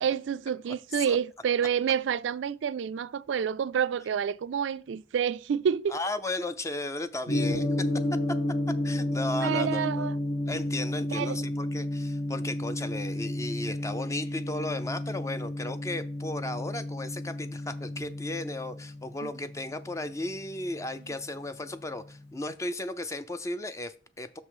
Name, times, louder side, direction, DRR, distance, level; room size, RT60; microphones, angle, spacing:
voice 1, 0.0-6.0 9.4-10.1 11.1-11.4 19.2-19.3, right 8 dB, 90° right, 0.3 m, -28 dB
voice 2, 5.9-8.4 8.8-10.1 10.5-24.4, left 2 dB, 15° left, 0.4 m, -35 dB
Gong, 7.3-21.4, left 1 dB, 70° left, 2.0 m, -32 dB
6.3 x 5.5 x 4.8 m
head